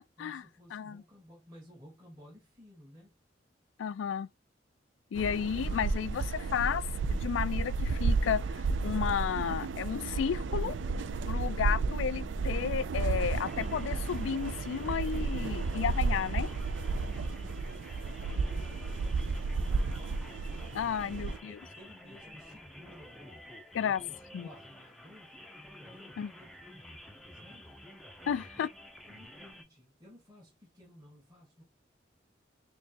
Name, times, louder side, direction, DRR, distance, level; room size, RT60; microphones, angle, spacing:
voice 1, 0.2-3.2 16.8-20.2 21.4-23.3 24.0-25.4 25.8-27.7 28.2-28.7 29.0-31.6, equal, 20° right, 1.6 m, -56 dB
voice 2, 0.7-1.0 3.8-4.3 5.1-6.8 7.1-10.8 11.3-16.5 20.7-21.6 23.7-24.0 24.3-24.5 26.2-26.3 28.3-28.7, left 8 dB, 80° left, 0.3 m, -32 dB
sound 1, 5.1-21.4, right 4 dB, 75° right, 0.4 m, -32 dB
sound 2, 13.3-29.6, left 1 dB, ahead, 0.6 m, -50 dB
4.4 x 3.0 x 2.8 m
head